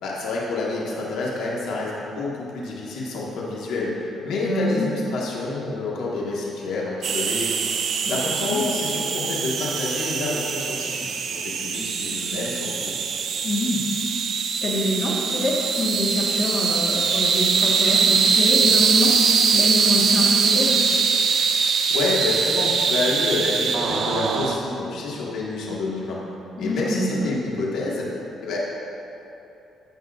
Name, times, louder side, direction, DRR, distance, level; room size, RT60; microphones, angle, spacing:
voice 1, 0.0-7.5 8.1-13.0 21.9-26.2 26.6-28.1 28.4-28.6, left 3 dB, 85° left, -4 dB, 1.7 m, -28 dB
voice 2, 4.3-4.8 8.1-8.2 8.5-8.6 13.4-13.8 14.6-19.1 19.5-20.8 26.6-27.3, left 1 dB, 45° left, -3 dB, 1.6 m, -25 dB
sound 1, 7.0-24.6, right 5 dB, 65° right, 0.6 m, -22 dB
15.5 x 5.6 x 2.6 m, 2.9 s
cardioid pair, 90°, 0 cm